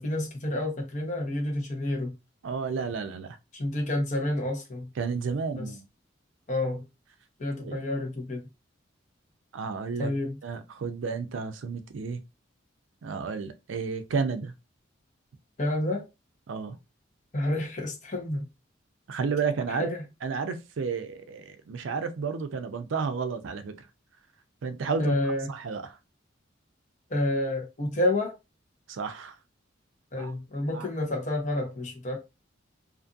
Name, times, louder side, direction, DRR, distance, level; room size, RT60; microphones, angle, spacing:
voice 1, 0.0-2.1 3.5-4.9 5.5-5.7 6.5-6.8 7.4-8.4 10.0-10.4 15.6-16.0 17.3-18.4 19.7-20.0 25.0-25.5 27.1-28.3 30.1-32.2, left 1 dB, 40° left, 0.9 m, -29 dB
voice 2, 2.4-3.4 5.0-5.8 7.6-7.8 9.5-10.1 10.4-12.2 13.0-14.5 16.5-16.8 19.1-19.9 20.2-23.9 24.6-25.1 25.5-26.0 28.9-29.4 30.1-30.3 30.7-30.9, right 5 dB, 70° right, 0.4 m, -32 dB
2.5 x 2.5 x 2.5 m
head